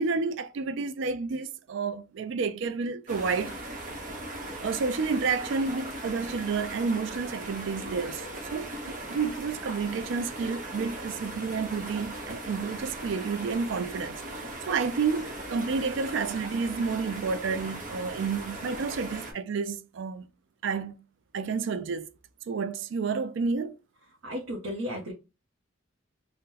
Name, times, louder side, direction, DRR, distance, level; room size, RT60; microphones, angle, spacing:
voice 1, 0.0-3.5 4.6-8.2 8.5-14.2 14.7-20.2 20.6-20.9 21.3-22.1 22.5-23.7, right 5 dB, 60° right, 0.3 m, -30 dB
sound 1, 3.1-19.3, right 1 dB, 40° right, 0.8 m, -39 dB
voice 2, 24.2-25.1, equal, 80° right, 0.8 m, -34 dB
2.8 x 2.1 x 3.7 m
head